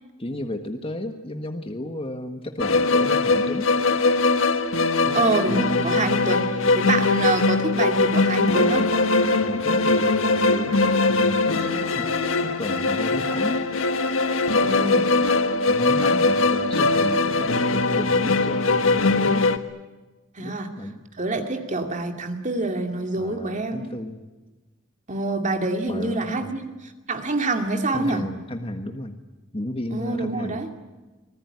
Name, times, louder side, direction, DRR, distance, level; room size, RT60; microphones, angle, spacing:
voice 1, 0.2-3.7 5.0-5.2 9.4-12.1 12.4-13.6 14.6-14.8 15.7-19.5 20.4-21.0 23.2-24.2 25.9-26.5 27.9-29.2 29.5-30.7, left 1 dB, 30° left, 6 dB, 1.5 m, -33 dB
sound 1, 2.6-19.6, left 3 dB, 85° left, 1.6 m, -21 dB
voice 2, 5.1-8.9 14.6-15.0 20.3-20.7 21.2-23.9 25.1-28.2 29.9-30.7, right 2 dB, 40° right, 5 dB, 2.4 m, -26 dB
25.0 x 20.5 x 9.7 m, 1.2 s
head